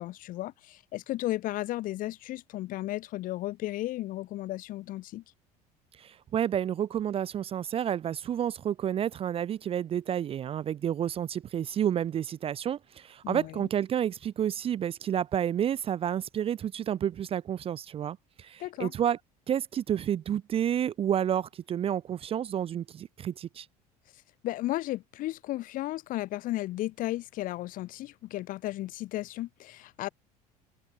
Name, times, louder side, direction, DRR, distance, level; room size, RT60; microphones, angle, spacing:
voice 1, 0.0-5.2 13.2-13.7 18.6-18.9 24.4-30.1, left 16 dB, 45° left, 0.8 m, -34 dB
voice 2, 6.0-19.2 19.5-23.7, right 9 dB, 30° right, 0.5 m, -30 dB
figure-of-eight pair, 65°, 20 cm